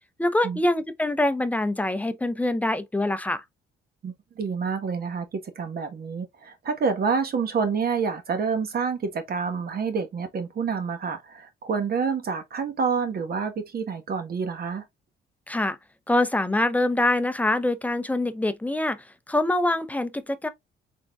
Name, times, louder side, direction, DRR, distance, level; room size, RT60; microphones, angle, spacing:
voice 1, 0.2-3.4 15.5-15.8 16.1-20.5, left 1 dB, 5° left, 0.5 m, -24 dB
voice 2, 4.0-14.8, right 5 dB, 50° right, 1.1 m, -28 dB
3.8 x 3.5 x 2.2 m
cardioid pair, 90°, 20 cm